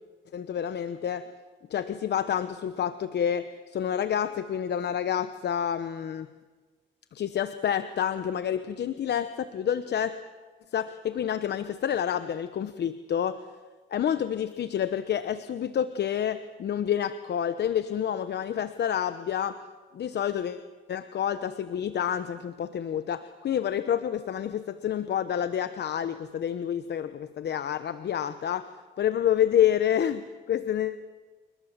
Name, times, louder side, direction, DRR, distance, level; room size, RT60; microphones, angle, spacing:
voice 1, 0.3-1.3 1.7-6.3 7.1-10.2 10.7-13.4 13.9-19.6 19.9-28.7 29.0-31.0, left 9 dB, 60° left, 12 dB, 1.0 m, -28 dB
29.5 x 19.5 x 7.4 m, 1.3 s
cardioid pair, 90°, 20 cm